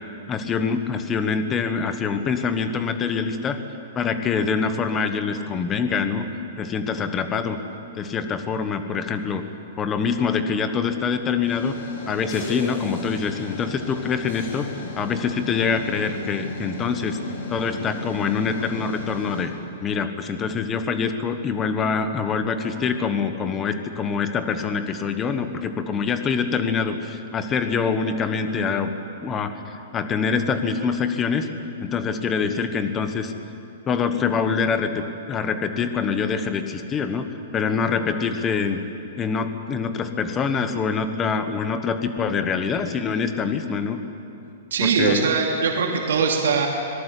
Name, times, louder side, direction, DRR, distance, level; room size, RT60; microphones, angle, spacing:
voice 1, 0.3-3.6 3.9-6.3 6.6-7.6 7.9-9.4 9.8-11.7 12.1-14.7 15.0-17.2 17.5-19.5 19.8-28.9 29.2-31.5 31.8-33.3 33.9-37.3 37.5-38.8 39.2-44.0 44.8-45.3, left 5 dB, 15° left, 9 dB, 1.1 m, -25 dB
sound 1, 11.5-19.5, left 1 dB, 65° left, 6.4 m, -35 dB
voice 2, 44.7-46.7, right 5 dB, 80° right, 0 dB, 2.7 m, -21 dB
25.0 x 18.5 x 8.3 m, 2.6 s
hypercardioid pair, 175°, 0 cm